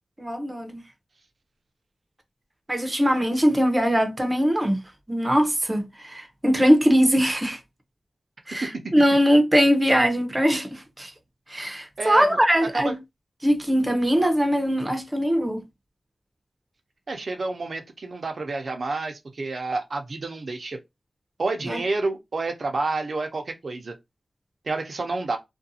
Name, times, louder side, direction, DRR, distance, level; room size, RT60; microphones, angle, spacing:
voice 1, 0.2-0.8 2.7-4.8 5.1-7.6 8.5-11.1 11.5-13.0 13.4-15.6 21.6-21.8, equal, 20° right, 0.7 m, -21 dB
voice 2, 12.0-12.4 12.7-13.0 17.1-20.8 21.4-23.9 24.7-25.4, right 3 dB, 65° right, 0.6 m, -29 dB
2.5 x 2.2 x 2.7 m
wide cardioid pair, 80°, 0 cm